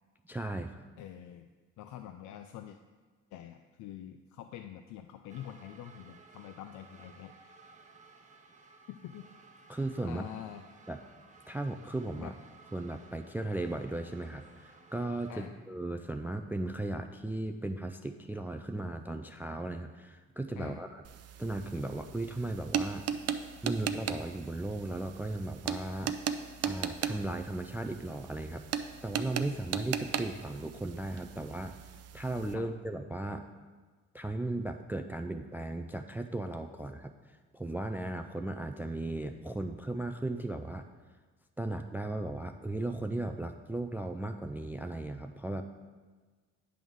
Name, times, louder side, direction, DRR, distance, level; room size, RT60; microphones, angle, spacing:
voice 1, 0.2-0.9 9.7-10.3 10.9-11.0 11.5-12.3 12.7-21.0 21.4-23.0 23.6-26.1 26.6-31.7 32.1-33.5 34.1-40.8 41.6-45.6, right 2 dB, 5° right, 7 dB, 0.3 m, -36 dB
voice 2, 1.0-1.5 1.8-2.8 3.3-7.6 8.9-9.3 10.0-10.6 12.2-12.3 15.3-15.5 20.6-20.8 32.5-32.7, left 11 dB, 75° left, 7 dB, 0.5 m, -46 dB
sound 1, 5.3-15.5, right 4 dB, 25° right, 0.9 m, -57 dB
sound 2, 21.0-32.6, right 8 dB, 55° right, 0.5 m, -38 dB
9.2 x 3.6 x 6.3 m, 1.4 s
cardioid pair, 90°, 30 cm